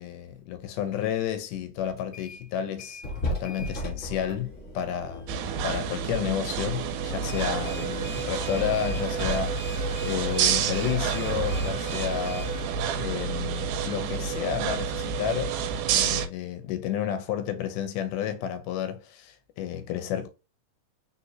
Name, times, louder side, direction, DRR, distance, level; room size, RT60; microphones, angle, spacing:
voice 1, 0.0-3.0 3.3-5.3 5.6-12.5 12.9-15.6 15.9-20.3, left 9 dB, 90° left, 2.2 m, -31 dB
sound 1, 2.0-2.5 2.8-11.2, left 1 dB, 35° left, 1.2 m, -38 dB
sound 2, 5.3-16.3, right 7 dB, 90° right, 2.1 m, -29 dB
sound 3, 7.3-12.6, left 6 dB, 75° left, 2.4 m, -41 dB
4.3 x 4.0 x 2.7 m
omnidirectional pair, 3.6 m